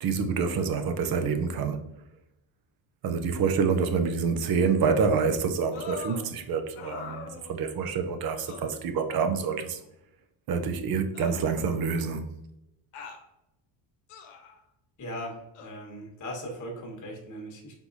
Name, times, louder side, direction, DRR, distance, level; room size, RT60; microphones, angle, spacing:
voice 1, 0.0-1.8 3.0-9.8 10.5-12.3, right 5 dB, 45° right, 0.6 m, -27 dB
sound 1, 5.7-6.3 6.8-7.8 8.5-8.7 9.8-9.9 11.1-12.0 12.9-13.2 14.1-14.6 15.5-15.7, left 5 dB, 85° left, 0.9 m, -42 dB
voice 2, 15.0-17.7, equal, 35° left, 1.3 m, -39 dB
4.5 x 3.6 x 2.6 m
cardioid pair, 125°, 50 cm